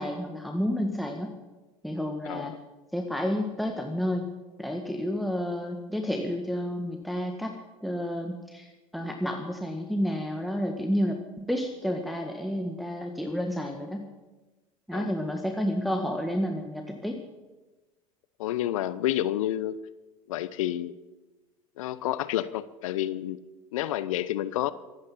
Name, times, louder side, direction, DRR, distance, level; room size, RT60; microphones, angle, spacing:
voice 1, 0.0-1.3 1.8-2.5 2.9-4.3 4.6-7.5 7.8-8.7 8.9-14.1 14.9-17.2, equal, ahead, 2 dB, 1.8 m, -30 dB
voice 2, 2.2-2.6 14.9-15.1 18.4-19.8 20.3-20.9 21.8-23.4 23.7-24.7, left 13 dB, 75° left, 16 dB, 0.8 m, -29 dB
24.0 x 9.8 x 5.6 m, 1.2 s
hypercardioid pair, 80°, 17 cm